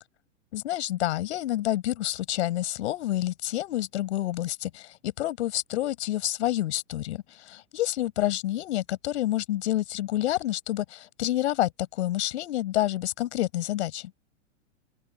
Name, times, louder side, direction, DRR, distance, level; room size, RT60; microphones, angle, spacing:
voice 1, 0.5-14.1, left 14 dB, 65° left, 5.0 m, -28 dB
hypercardioid pair, 115°, 37 cm